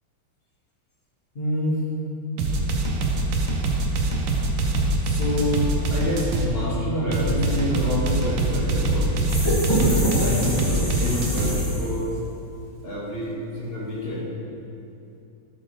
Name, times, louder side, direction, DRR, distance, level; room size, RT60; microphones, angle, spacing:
voice 1, 1.3-1.9 5.0-9.3 9.7-12.2 12.8-14.3, equal, 30° left, -6 dB, 1.5 m, -27 dB
sound 1, 2.4-6.5 7.1-11.5, right 2 dB, 80° right, 1.6 m, -24 dB
sound 2, 9.3-12.1, right 1 dB, 15° left, 1.1 m, -26 dB
11.0 x 5.3 x 3.1 m, 2.6 s
omnidirectional pair, 2.3 m